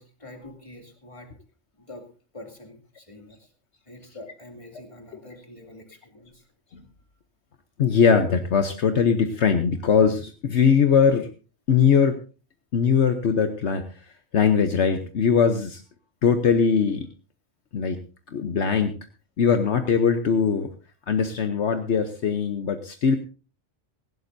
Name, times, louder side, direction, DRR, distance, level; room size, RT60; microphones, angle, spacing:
voice 1, 0.0-1.3 1.8-2.0 2.3-3.5 3.9-6.5, left 1 dB, 25° left, 3 dB, 2.7 m, -45 dB
voice 2, 7.8-11.3 11.7-12.2 12.7-13.8 14.3-15.8 16.2-17.1 17.7-18.0 18.3-18.9 19.4-20.7 21.1-23.2, left 6 dB, 65° left, 7 dB, 1.2 m, -21 dB
18.0 x 16.0 x 2.7 m, 0.35 s
omnidirectional pair, 1.3 m